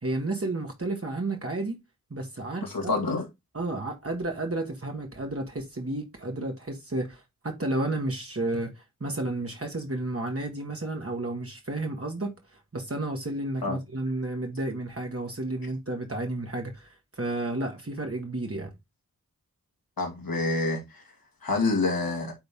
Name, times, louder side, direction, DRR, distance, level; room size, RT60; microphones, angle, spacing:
voice 1, 0.0-1.8 2.1-2.9 3.5-8.7 9.0-12.3 12.7-18.7, right 2 dB, 40° right, 1.5 m, -32 dB
voice 2, 2.6-3.3 13.6-13.8 20.0-21.0 21.4-22.3, left 3 dB, 80° left, 2.4 m, -27 dB
8.7 x 3.4 x 3.6 m
wide cardioid pair, 50°, 34 cm